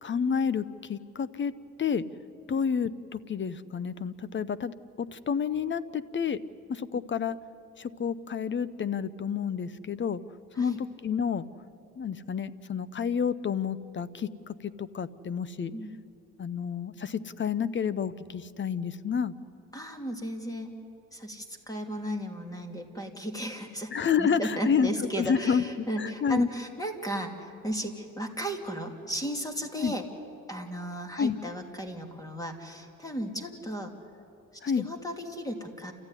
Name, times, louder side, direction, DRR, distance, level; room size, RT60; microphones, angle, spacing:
voice 1, 0.0-1.5 1.8-2.0 2.5-6.4 6.7-7.4 7.8-10.2 10.6-11.5 12.0-15.7 16.4-19.3 23.9-24.9 25.2-26.5 29.8-29.9 31.2-31.3 34.6-34.9, left 6 dB, 40° left, 17 dB, 0.8 m, -29 dB
voice 2, 19.7-20.7 21.1-23.9 24.2-30.0 30.5-33.9 34.5-35.9, equal, 10° left, 4 dB, 2.7 m, -35 dB
30.0 x 14.0 x 9.9 m, 2.7 s
cardioid pair, 90°, 30 cm